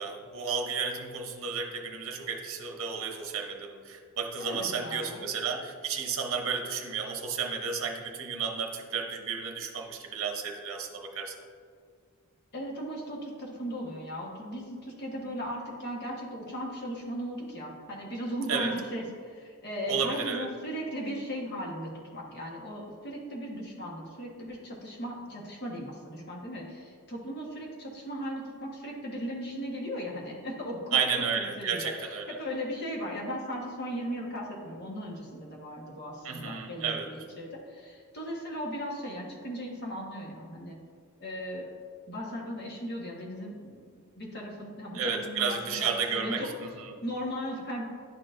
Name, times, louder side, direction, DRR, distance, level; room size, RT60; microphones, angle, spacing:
voice 1, 0.0-11.3 18.5-18.7 19.9-20.5 30.9-32.4 36.2-37.1 44.9-46.9, right 6 dB, 65° right, 3 dB, 0.7 m, -32 dB
voice 2, 4.4-5.2 12.5-31.3 31.6-31.8 32.3-40.8 41.2-41.7 42.1-43.8 44.1-46.5 47.0-47.8, equal, 50° left, -3 dB, 1.3 m, -37 dB
10.5 x 4.5 x 2.5 m, 2.1 s
head